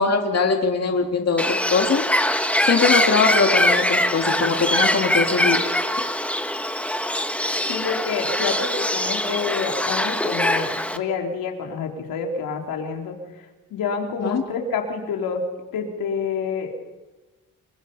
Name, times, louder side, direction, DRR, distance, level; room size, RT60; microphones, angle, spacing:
voice 1, 0.0-2.1 2.6-5.6 14.2-14.4, left 4 dB, 50° left, 3 dB, 2.4 m, -21 dB
Bird, 1.4-11.0, left 1 dB, 5° left, 1.6 m, -22 dB
voice 2, 7.7-13.2 13.7-15.4 15.7-16.7, left 5 dB, 90° left, 2 dB, 3.7 m, -28 dB
30.0 x 23.0 x 5.5 m, 1.2 s
cardioid pair, 100°, 34 cm